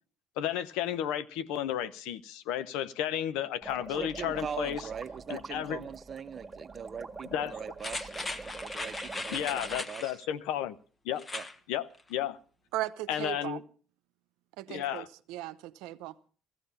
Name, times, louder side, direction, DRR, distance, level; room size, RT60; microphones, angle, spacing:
voice 1, 0.4-4.8 5.3-5.8 7.3-7.5 9.3-10.8 11.1-11.2 11.7-12.4 13.1-13.6 14.7-15.1, left 10 dB, 85° left, 0.8 m, -33 dB
sound 1, 3.6-9.8, right 4 dB, 20° right, 1.8 m, -44 dB
voice 2, 3.9-10.2 11.3-11.5, right 7 dB, 45° right, 1.0 m, -42 dB
sound 2, 7.8-10.1 11.2-11.5 11.9-12.0, left 2 dB, 25° left, 1.4 m, -38 dB
voice 3, 12.7-13.6 14.6-16.3, right 16 dB, 80° right, 0.8 m, -37 dB
15.5 x 15.0 x 5.5 m
supercardioid pair, 80°, 0 cm